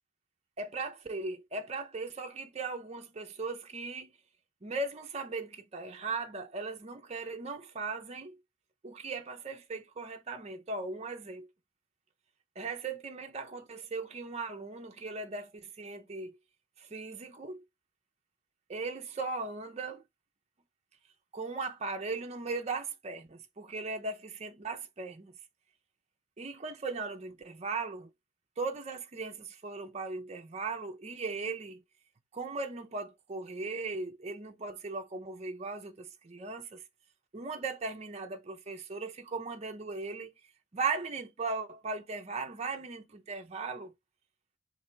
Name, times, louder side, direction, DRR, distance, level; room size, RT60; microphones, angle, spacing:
voice 1, 0.6-4.1 4.6-8.4 8.8-11.5 12.6-16.3 16.8-17.6 18.7-20.0 21.3-25.3 26.4-28.1 28.6-31.8 32.3-36.8 37.3-40.3 40.7-43.9, right 3 dB, 30° right, 0.5 m, -38 dB
4.2 x 2.5 x 3.1 m
head